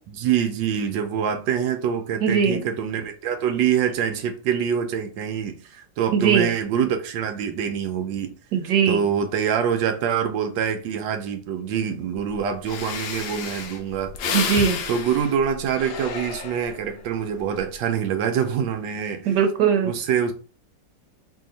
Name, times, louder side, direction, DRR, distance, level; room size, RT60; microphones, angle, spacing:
voice 1, 0.1-8.3 8.9-14.1 14.9-19.4 19.8-20.3, right 8 dB, 90° right, 1.3 m, -25 dB
voice 2, 2.2-2.6 6.2-6.5 8.5-9.0 14.3-14.8 19.3-19.9, right 7 dB, 70° right, 1.3 m, -20 dB
Breathing, 12.3-12.4 12.7-16.9 17.4-17.7, left 5 dB, 70° left, 1.1 m, -31 dB
3.2 x 2.8 x 3.8 m
omnidirectional pair, 2.0 m